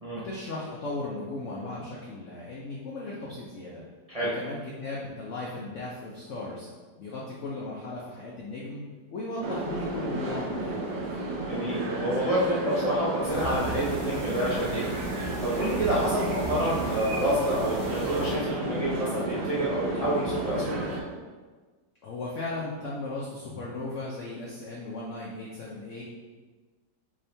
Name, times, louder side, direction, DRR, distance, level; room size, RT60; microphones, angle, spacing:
voice 1, 0.1-3.8 4.2-6.7 7.0-8.8 9.1-11.1 22.0-26.0, left 2 dB, 65° left, -4 dB, 0.8 m, -36 dB
sound 1, 9.4-21.0, right 2 dB, 70° right, 1.2 m, -32 dB
voice 2, 11.4-20.8, right 1 dB, 55° right, -9 dB, 0.4 m, -28 dB
sound 2, 13.2-18.4, right 2 dB, 40° right, 1.5 m, -37 dB
4.2 x 3.6 x 3.3 m, 1.4 s
omnidirectional pair, 1.9 m